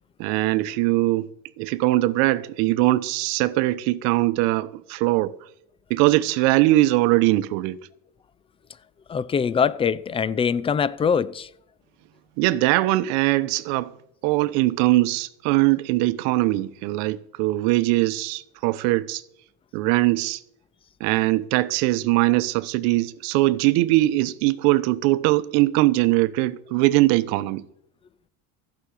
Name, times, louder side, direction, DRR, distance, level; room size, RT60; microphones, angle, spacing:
voice 1, 0.2-5.4 5.9-7.8 12.4-13.9 14.2-19.2 19.7-20.4 21.0-27.6, right 18 dB, 70° right, 0.9 m, -21 dB
voice 2, 9.1-11.5, left 6 dB, 20° left, 0.5 m, -23 dB
15.0 x 6.2 x 8.4 m
supercardioid pair, 130°, 30 cm